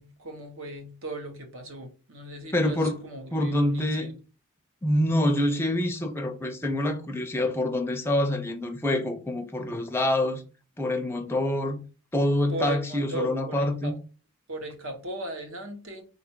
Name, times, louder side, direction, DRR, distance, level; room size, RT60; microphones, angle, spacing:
voice 1, 0.0-4.2 12.5-14.0 14.5-16.0, right 1 dB, 65° right, 1.0 m, -37 dB
voice 2, 2.5-2.9 3.3-4.1 4.8-10.4 10.8-11.8 12.1-13.9, left 1 dB, 10° left, 0.5 m, -26 dB
4.1 x 2.5 x 4.4 m
head